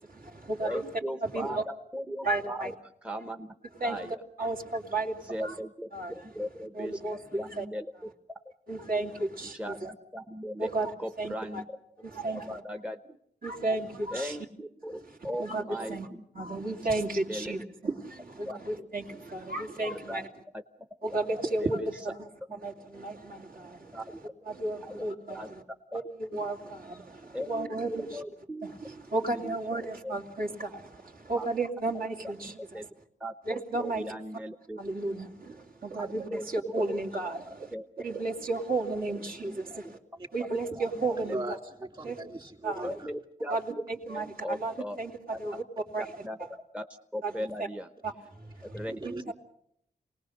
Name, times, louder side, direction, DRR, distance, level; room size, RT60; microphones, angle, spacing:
voice 1, 0.0-0.8 1.2-1.6 2.2-2.7 3.8-4.1 4.4-5.5 5.9-6.1 6.7-7.7 8.7-9.7 10.6-11.6 12.0-12.5 13.4-14.4 15.4-16.1 16.3-20.3 21.0-22.3 22.6-24.0 24.5-25.6 25.9-28.2 28.9-32.9 33.5-34.0 34.8-40.0 40.3-41.4 42.0-42.2 42.6-42.9 43.5-43.6 44.1-45.6 45.9-46.0 47.2-47.3 48.0-48.1 48.6-49.3, right 2 dB, 60° right, 2.9 m, -33 dB
voice 2, 0.6-2.7 3.0-3.5 3.8-4.2 5.2-7.9 9.4-10.7 11.0-11.7 12.3-13.2 14.1-16.3 17.3-17.7 18.5-18.9 19.8-20.2 20.5-20.6 21.4-22.1 23.9-24.2 24.8-25.0 25.3-25.5 26.3-26.4 27.3-28.7 29.1-30.2 31.3-31.5 31.8-31.9 32.2-32.9 33.2-34.8 36.0-37.0 37.5-37.8 39.4-39.8 40.4-41.4 42.8-43.8 44.1-45.0 46.0-46.4 46.7-46.9 47.1-47.9 48.6-49.0 49.2-49.3, equal, 5° right, 1.0 m, -38 dB
voice 3, 41.3-42.9 48.8-49.2, right 2 dB, 30° right, 2.9 m, -38 dB
28.0 x 19.5 x 6.5 m
cardioid pair, 85°, 17 cm